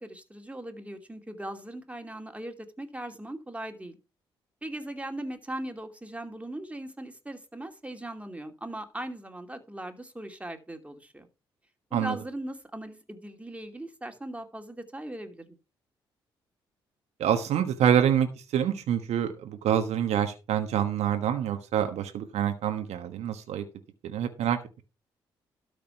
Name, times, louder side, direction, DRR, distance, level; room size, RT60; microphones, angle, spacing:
voice 1, 0.0-4.0 4.6-11.3 11.9-15.6, right 1 dB, 10° right, 2.7 m, -39 dB
voice 2, 17.2-23.6 24.0-24.6, right 9 dB, 65° right, 1.3 m, -26 dB
12.5 x 5.2 x 5.9 m
hypercardioid pair, 45°, 12 cm